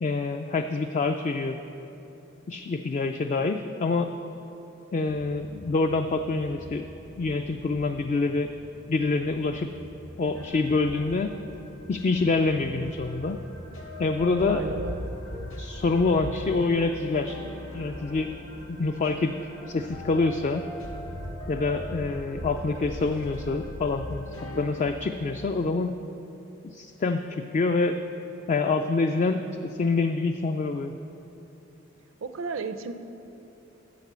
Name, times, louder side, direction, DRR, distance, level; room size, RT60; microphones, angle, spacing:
voice 1, 0.0-1.6 2.5-4.1 4.9-6.9 7.2-8.5 8.9-9.7 10.2-11.3 11.9-13.4 14.0-14.6 15.6-17.4 17.7-18.3 18.7-19.4 19.7-20.6 21.5-24.3 24.6-25.9 26.6-28.0 28.5-30.9, left 3 dB, 35° left, 6 dB, 0.3 m, -26 dB
sound 1, 5.1-13.9, equal, 60° left, 2.3 m, -49 dB
sound 2, 10.3-24.9, left 1 dB, 80° left, 1.7 m, -39 dB
voice 2, 14.5-15.0 32.2-32.9, right 4 dB, 75° right, 10 dB, 0.5 m, -33 dB
9.2 x 7.4 x 6.8 m, 3.0 s
head